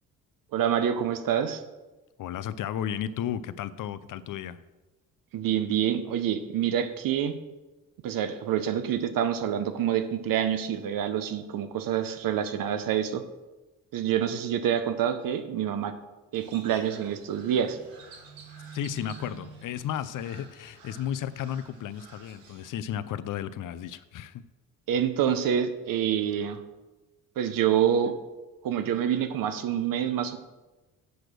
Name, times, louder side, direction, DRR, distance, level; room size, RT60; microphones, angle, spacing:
voice 1, 0.5-1.6 5.3-7.3 8.0-13.2 13.9-15.9 16.3-17.8 24.9-26.6 27.4-28.1 28.6-30.4, right 9 dB, 70° right, 10 dB, 0.9 m, -27 dB
voice 2, 2.2-4.6 18.7-24.4, left 10 dB, 60° left, 14 dB, 0.6 m, -33 dB
Crow, 16.3-22.7, right 5 dB, 90° right, 1.4 m, -49 dB
7.9 x 4.9 x 6.2 m, 1.1 s
cardioid pair, 75°, 35 cm